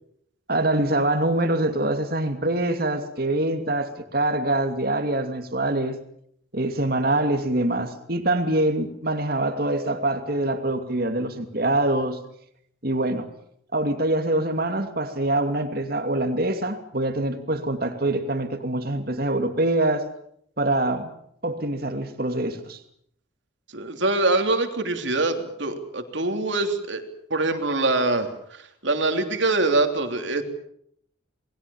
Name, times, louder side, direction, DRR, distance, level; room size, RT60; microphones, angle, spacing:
voice 1, 0.5-6.0 6.5-12.2 12.8-13.3 13.7-20.0 20.6-21.1 21.4-22.8, right 1 dB, 45° right, 2.6 m, -24 dB
voice 2, 23.7-27.0 27.3-30.4, right 2 dB, 65° right, 3.3 m, -24 dB
28.5 x 21.0 x 7.2 m
head